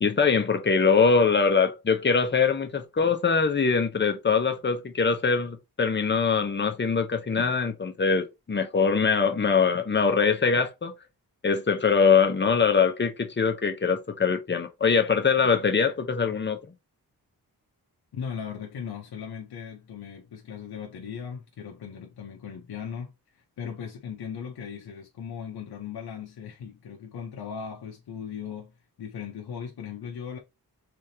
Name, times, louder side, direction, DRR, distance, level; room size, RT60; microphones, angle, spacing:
voice 1, 0.0-10.9 11.4-16.6, left 5 dB, 30° left, 0.7 m, -23 dB
voice 2, 18.1-30.4, left 7 dB, 80° left, 0.8 m, -38 dB
3.4 x 3.4 x 2.7 m
wide cardioid pair, 130°, 38 cm